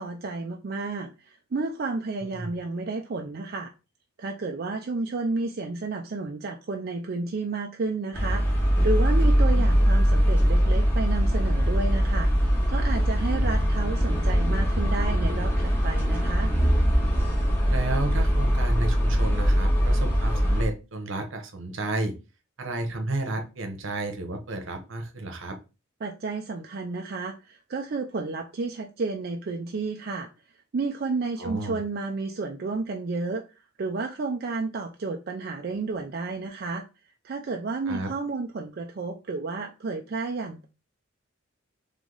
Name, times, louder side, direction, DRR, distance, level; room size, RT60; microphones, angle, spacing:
voice 1, 0.0-3.7 4.2-16.5 26.0-30.3 30.7-33.4 33.8-36.8 37.2-40.7, right 3 dB, 50° right, 0.4 m, -31 dB
voice 2, 2.2-2.5 9.5-9.6 17.7-22.1 22.6-25.6 31.4-31.8 37.9-38.1, right 2 dB, 70° right, 0.9 m, -32 dB
sound 1, 8.1-20.6, equal, 10° left, 1.1 m, -22 dB
3.6 x 3.3 x 3.9 m
head